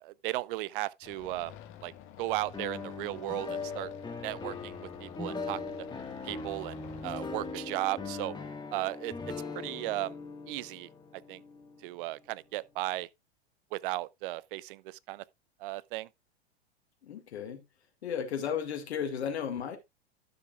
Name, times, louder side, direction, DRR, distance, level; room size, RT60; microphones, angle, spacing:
voice 1, 0.0-1.5 1.8-1.9 2.2-3.9 4.2-5.9 6.2-6.8 7.0-8.3 8.7-9.1 9.5-10.1 10.5-10.9 11.3-11.4 11.8-13.1 13.7-15.2 15.6-16.1, right 18 dB, 50° right, 0.5 m, -35 dB
sound 1, 1.0-7.5, left 11 dB, 40° left, 1.6 m, -50 dB
sound 2, 2.5-12.5, left 4 dB, 15° left, 1.7 m, -40 dB
voice 2, 17.0-17.6 18.0-19.8, left 8 dB, 75° left, 2.0 m, -34 dB
11.5 x 7.0 x 2.4 m
hypercardioid pair, 100°, 33 cm